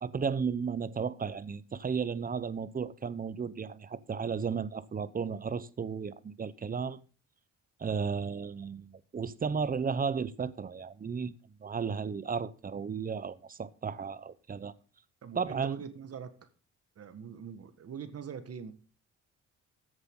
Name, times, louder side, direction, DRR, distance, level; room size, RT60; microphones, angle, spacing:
voice 1, 0.0-7.0 7.8-11.3 11.6-14.7 15.3-15.8, right 6 dB, 30° right, 0.8 m, -34 dB
voice 2, 15.2-16.3 16.9-18.7, right 7 dB, 50° right, 1.7 m, -43 dB
14.5 x 7.9 x 3.8 m
cardioid pair, 90°, 30 cm